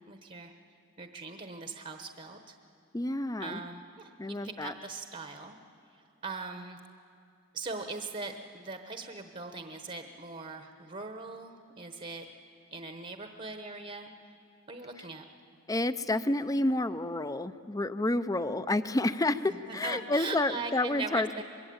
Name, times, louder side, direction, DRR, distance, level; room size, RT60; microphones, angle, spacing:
voice 1, 0.1-0.5 1.0-2.5 3.4-5.6 5.9-6.8 7.5-12.2 12.7-14.1 14.7-15.2 19.6-21.4, right 3 dB, 35° right, 6 dB, 1.1 m, -40 dB
voice 2, 2.9-3.6 4.2-4.7 15.0-15.1 15.7-21.4, left 2 dB, 15° left, 13 dB, 0.6 m, -29 dB
24.5 x 21.5 x 8.7 m, 2.5 s
head